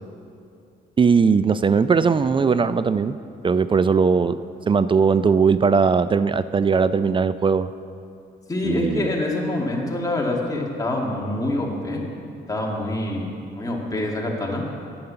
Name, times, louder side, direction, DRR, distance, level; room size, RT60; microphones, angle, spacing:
voice 1, 1.0-3.2 3.4-4.4 4.7-7.7 8.6-9.1, right 5 dB, 25° right, 14 dB, 0.3 m, -19 dB
voice 2, 8.5-12.0 12.5-14.6, left 1 dB, 15° left, -2 dB, 2.0 m, -26 dB
9.5 x 8.6 x 6.8 m, 2.5 s
cardioid pair, 90°, 20 cm